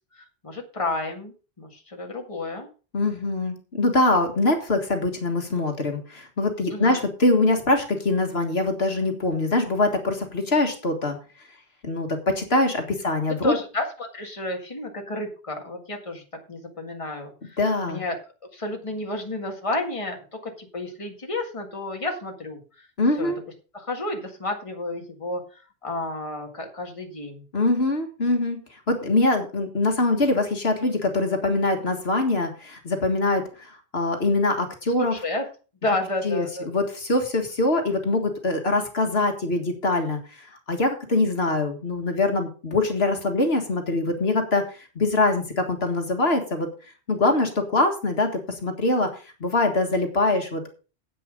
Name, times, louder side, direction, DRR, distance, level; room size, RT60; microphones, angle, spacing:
voice 1, 0.2-2.7 6.7-7.0 13.4-16.2 16.5-17.6 17.9-18.2 18.5-22.6 23.2-23.3 23.7-25.4 25.8-27.4 35.0-35.5 35.8-36.7, left 2 dB, 30° left, 2 dB, 2.0 m, -31 dB
voice 2, 2.9-11.2 11.8-13.6 17.6-18.0 23.0-23.4 27.5-28.6 28.9-35.2 36.2-46.7 47.1-49.1 49.4-50.7, left 2 dB, 65° left, 4 dB, 2.0 m, -23 dB
9.9 x 8.7 x 5.1 m, 0.35 s
omnidirectional pair, 1.1 m